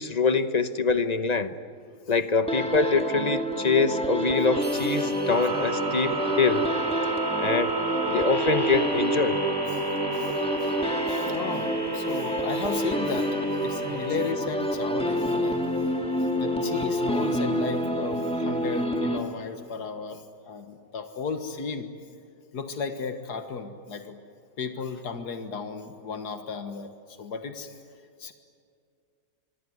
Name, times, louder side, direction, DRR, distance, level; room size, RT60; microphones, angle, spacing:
voice 1, 0.0-1.5 2.1-6.7 7.4-7.7 8.1-9.4, left 4 dB, 30° left, 11 dB, 0.9 m, -24 dB
sound 1, 2.5-19.7, equal, 5° left, 2.1 m, -28 dB
sound 2, 4.5-18.8, right 3 dB, 15° right, 3.1 m, -33 dB
sound 3, 4.6-14.6, left 3 dB, 60° left, 5.5 m, -55 dB
voice 2, 10.1-10.7 11.1-13.4 13.6-15.6 16.3-21.9 22.5-24.2 24.6-26.9 27.2-27.7 28.2-28.3, left 5 dB, 90° left, 7 dB, 2.1 m, -34 dB
25.0 x 24.5 x 9.6 m, 2.3 s
omnidirectional pair, 1.7 m